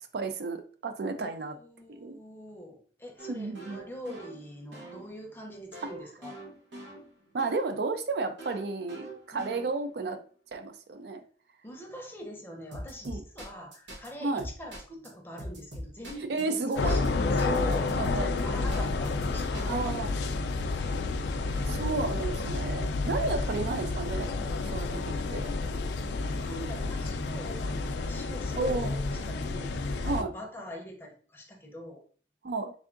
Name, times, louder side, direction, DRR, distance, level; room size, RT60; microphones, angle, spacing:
voice 1, 0.1-1.5 1.9-2.2 3.3-3.8 7.3-10.2 10.5-11.2 13.1-13.2 14.2-14.5 16.3-17.0 18.0-18.4 19.7-20.1 20.9-21.0 21.8-24.3 24.6-25.5 28.6-28.9 30.0-30.3 32.4-32.7, right 3 dB, 65° right, 7 dB, 0.4 m, -32 dB
voice 2, 1.2-6.4 9.3-9.5 11.6-20.0 21.5-22.0 26.2-32.0, left 1 dB, 10° left, 1 dB, 0.6 m, -43 dB
sound 1, 3.2-7.7 8.4-10.0 12.7-14.1 14.4-15.1 15.4-16.4 16.7-19.6, right 1 dB, 85° right, 1.1 m, -43 dB
sound 2, 16.8-30.2, left 3 dB, 75° left, 0.4 m, -30 dB
3.5 x 3.4 x 2.4 m, 0.44 s
head